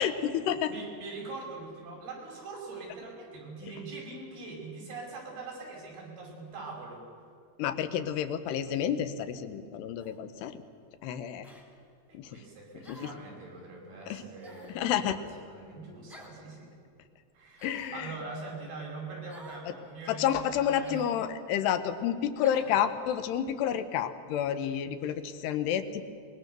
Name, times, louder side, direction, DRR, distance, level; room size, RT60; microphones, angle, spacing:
voice 1, 0.0-0.7 7.6-10.6 11.0-11.5 12.1-12.4 12.7-13.1 14.1-14.2 14.7-15.2 17.6-18.2 19.7-19.8 20.1-26.0, left 9 dB, 85° left, 10 dB, 3.1 m, -30 dB
voice 2, 0.7-7.0 12.1-16.7 17.3-17.7 17.9-21.0 22.6-22.7, right 3 dB, 70° right, -2 dB, 7.4 m, -43 dB
sound 1, 10.0-10.2 11.4-11.7 12.8-13.3 14.4-14.8 16.1-16.4 17.6-18.0 19.3-19.7 20.8-21.1 22.4-22.7, right 1 dB, ahead, 2.3 m, -51 dB
24.5 x 21.5 x 6.8 m, 2.4 s
omnidirectional pair, 4.6 m